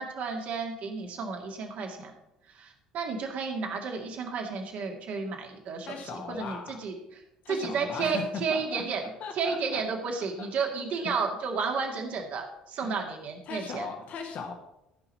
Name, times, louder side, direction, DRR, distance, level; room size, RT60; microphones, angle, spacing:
voice 1, 0.0-2.1 2.5-6.9 7.5-9.0 9.3-13.9, right 5 dB, 50° right, 2 dB, 2.1 m, -32 dB
voice 2, 5.9-6.8 7.4-9.8 10.2-10.5 10.9-11.2 12.8-13.0 13.5-14.5, left 5 dB, 50° left, 4 dB, 1.6 m, -38 dB
14.0 x 5.8 x 5.6 m, 0.86 s
figure-of-eight pair, 55°, 3 cm